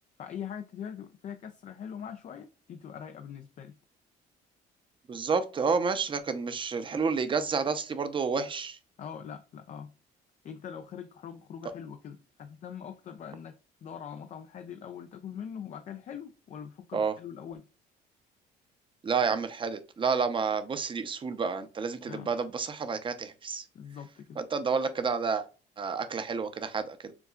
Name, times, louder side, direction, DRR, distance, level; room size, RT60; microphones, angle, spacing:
voice 1, 0.2-3.8 9.0-9.9 10.4-13.6 13.8-17.6 22.1-22.3 23.7-24.4, left 8 dB, 45° left, 0.5 m, -42 dB
voice 2, 5.1-8.8 16.9-17.1 19.0-23.6 24.4-25.4 25.8-27.1, right 5 dB, 30° right, 0.7 m, -30 dB
6.9 x 2.3 x 2.4 m
cardioid pair, 110°, 17 cm